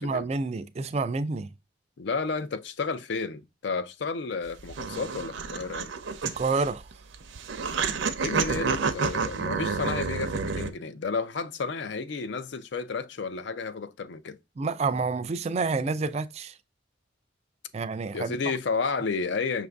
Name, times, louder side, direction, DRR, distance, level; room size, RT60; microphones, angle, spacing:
voice 1, 0.0-1.5 6.2-6.9 14.6-16.6 17.7-18.4, right 4 dB, 35° right, 0.3 m, -29 dB
voice 2, 2.0-5.9 8.2-14.4 18.1-19.7, left 4 dB, 65° left, 0.5 m, -32 dB
sound 1, 4.5-10.7, right 5 dB, 80° right, 0.6 m, -29 dB
5.8 x 2.5 x 3.4 m
head